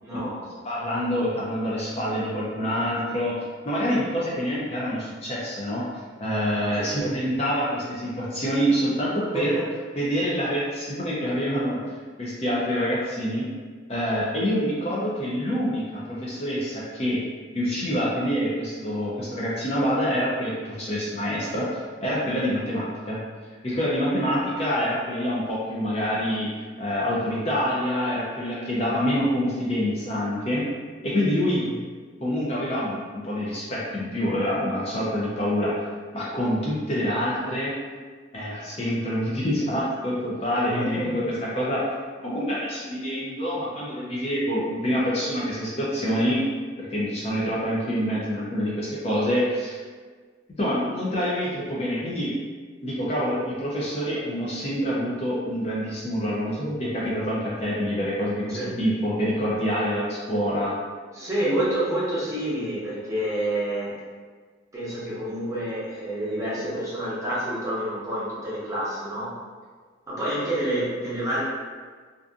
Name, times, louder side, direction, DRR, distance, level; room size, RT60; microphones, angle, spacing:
voice 1, 0.0-0.4 6.8-7.1 9.3-9.4 31.6-31.7 40.6-41.2 58.5-58.7 61.1-63.9 64.7-69.3 70.1-71.4, right 1 dB, 15° right, -10 dB, 0.8 m, -28 dB
voice 2, 0.6-3.3 3.7-5.8 6.2-9.6 9.9-11.9 12.2-13.5 13.9-17.2 17.5-23.2 23.6-26.5 26.8-30.7 31.0-31.6 32.2-35.8 36.1-37.7 38.3-41.9 42.2-46.4 46.9-49.8 50.6-52.3 52.8-60.7, equal, 35° left, -6 dB, 0.4 m, -26 dB
2.5 x 2.5 x 2.3 m, 1.5 s
head